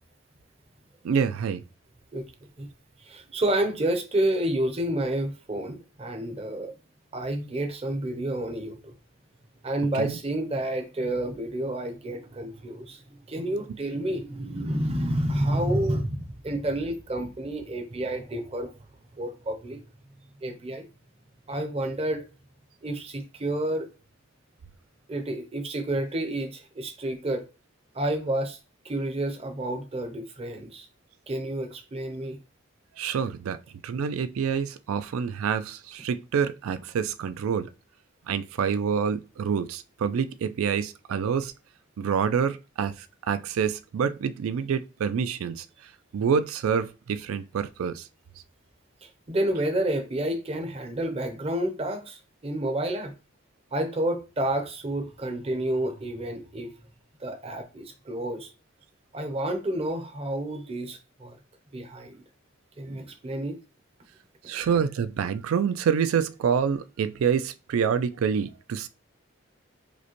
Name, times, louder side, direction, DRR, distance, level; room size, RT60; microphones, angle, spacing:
voice 1, 1.0-1.6 9.9-10.2 33.0-33.6 33.8-37.7 38.3-41.5 42.0-45.7 46.1-48.1 64.5-68.9, right 7 dB, 80° right, 0.3 m, -27 dB
voice 2, 3.0-6.7 7.1-8.9 9.6-13.0 13.3-18.7 19.2-19.8 20.4-20.8 21.5-22.2 22.8-23.9 25.1-27.5 27.9-28.6 28.8-30.9 31.3-32.4 49.0-53.1 53.7-56.7 57.2-58.5 59.1-61.4 61.7-62.2 62.8-63.6, right 1 dB, 30° right, 0.6 m, -29 dB
5.0 x 2.1 x 2.9 m
head